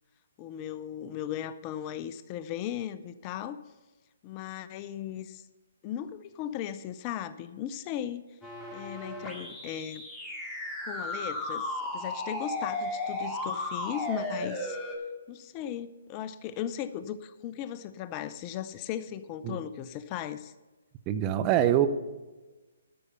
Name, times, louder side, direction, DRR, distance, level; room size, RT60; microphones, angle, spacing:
voice 1, 0.4-3.6 4.2-5.5 5.8-8.2 8.7-10.1 10.8-14.8 15.3-20.5, left 10 dB, 30° left, 14 dB, 0.5 m, -37 dB
sound 1, 8.4-15.0, left 1 dB, 10° left, 2.0 m, -35 dB
voice 2, 21.1-21.9, right 11 dB, 25° right, 11 dB, 0.7 m, -24 dB
12.0 x 6.5 x 5.7 m, 1.2 s
figure-of-eight pair, 135°, 0 cm